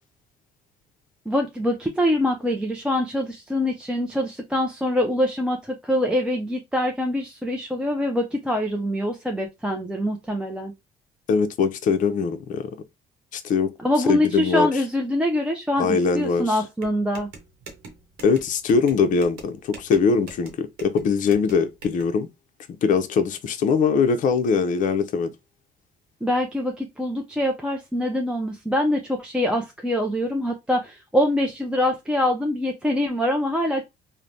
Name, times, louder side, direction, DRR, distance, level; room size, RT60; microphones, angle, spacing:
voice 1, 1.3-10.7 13.8-17.3 26.2-33.8, left 1 dB, 5° right, 0.4 m, -24 dB
voice 2, 11.3-12.7 13.3-13.7 14.1-14.7 15.8-16.4 18.2-22.3 22.8-25.3, left 5 dB, 50° left, 0.5 m, -22 dB
sound 1, 16.8-22.0, right 4 dB, 75° right, 0.9 m, -44 dB
3.1 x 2.1 x 2.5 m
cardioid pair, 110°, 17 cm